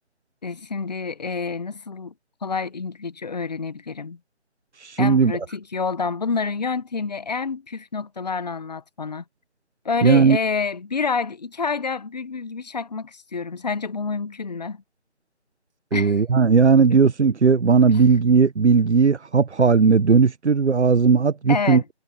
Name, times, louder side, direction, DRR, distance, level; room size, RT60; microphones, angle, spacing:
voice 1, 0.4-2.1 2.4-4.2 5.0-9.2 9.8-14.8 15.9-16.2 21.5-21.8, left 5 dB, 40° left, 1.2 m, -28 dB
voice 2, 4.7-5.3 10.0-10.4 15.9-21.8, right 5 dB, 80° right, 0.9 m, -17 dB
figure-of-eight pair, 160°, 34 cm